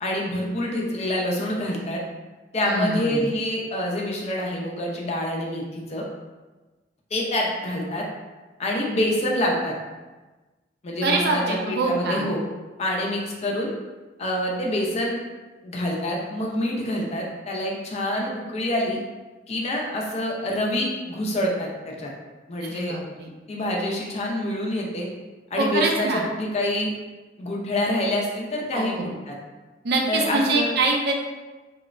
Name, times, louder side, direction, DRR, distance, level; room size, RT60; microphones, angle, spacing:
voice 1, 0.0-2.0 2.5-6.0 7.1-8.0 8.6-9.7 10.8-12.4 12.8-13.7 14.2-15.2 15.6-19.0 19.5-22.1 22.5-22.9 23.5-25.1 25.5-26.9 27.4-28.9 29.3-29.4 30.1-30.7, left 1 dB, 40° left, -1 dB, 0.4 m, -26 dB
voice 2, 2.6-3.3 11.0-12.3 22.7-23.3 25.6-26.2 28.7-29.1 29.8-31.1, right 2 dB, 65° right, 1 dB, 0.4 m, -24 dB
3.0 x 2.0 x 2.4 m, 1.2 s
head